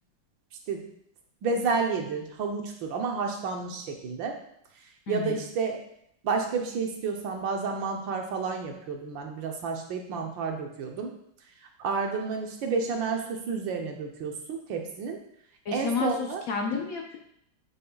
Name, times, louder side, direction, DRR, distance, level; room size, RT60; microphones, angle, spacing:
voice 1, 1.4-4.4 5.1-5.8 6.2-11.1 11.8-15.2 15.7-16.4, right 4 dB, 80° right, 2 dB, 1.6 m, -30 dB
voice 2, 5.1-5.4 15.6-17.2, left 5 dB, 60° left, 1 dB, 1.0 m, -31 dB
7.4 x 6.8 x 2.4 m, 0.72 s
omnidirectional pair, 2.1 m